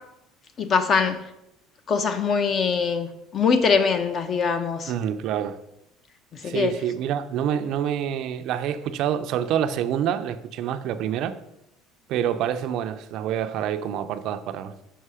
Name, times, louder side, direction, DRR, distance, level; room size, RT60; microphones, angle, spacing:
voice 1, 0.6-1.2 1.9-4.9 6.4-6.7, left 5 dB, 40° left, 0.7 m, -22 dB
voice 2, 4.9-5.6 6.4-11.4 12.1-14.7, right 9 dB, 60° right, 0.5 m, -27 dB
5.6 x 5.5 x 4.9 m
cardioid pair, 125°, 0 cm